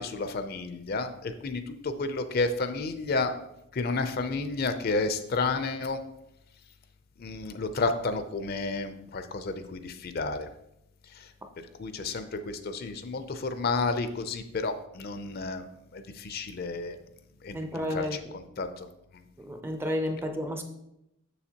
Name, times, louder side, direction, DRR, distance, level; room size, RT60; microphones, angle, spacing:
voice 1, 0.0-3.3 3.7-6.0 7.2-10.5 11.1-11.3 11.8-15.7 15.9-17.0 17.4-18.9 19.1-19.2, left 3 dB, 45° left, 0.5 m, -31 dB
voice 2, 17.5-18.3 19.4-20.6, left 1 dB, 10° right, 0.5 m, -32 dB
7.0 x 6.6 x 2.9 m
head